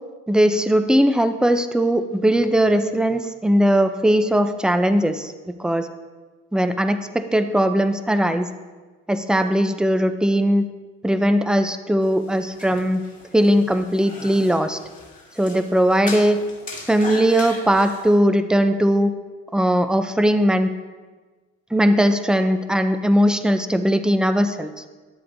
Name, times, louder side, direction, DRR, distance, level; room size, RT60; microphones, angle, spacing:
voice 1, 0.3-5.3 5.6-5.9 6.5-8.5 9.1-10.7 11.0-13.0 13.3-14.8 15.4-16.4 16.9-19.1 19.5-20.7 21.7-24.9, equal, 5° right, 9 dB, 0.4 m, -19 dB
sound 1, 12.0-18.2, left 3 dB, 25° left, 1.8 m, -38 dB
11.5 x 7.6 x 2.6 m, 1.3 s
cardioid pair, 90°, 30 cm